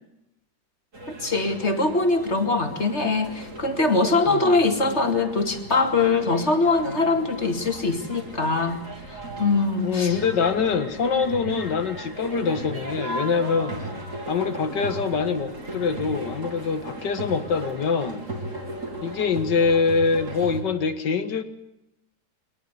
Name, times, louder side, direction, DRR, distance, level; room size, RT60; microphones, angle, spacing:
sound 1, 0.9-20.6, right 1 dB, 45° right, 4.3 m, -36 dB
voice 1, 1.1-8.8 9.1-10.2, left 3 dB, 40° left, 7 dB, 2.4 m, -22 dB
voice 2, 9.8-13.8 14.3-18.2 19.0-21.4, left 5 dB, 85° left, 10 dB, 2.3 m, -24 dB
22.5 x 19.0 x 9.7 m, 0.86 s
omnidirectional pair, 1.8 m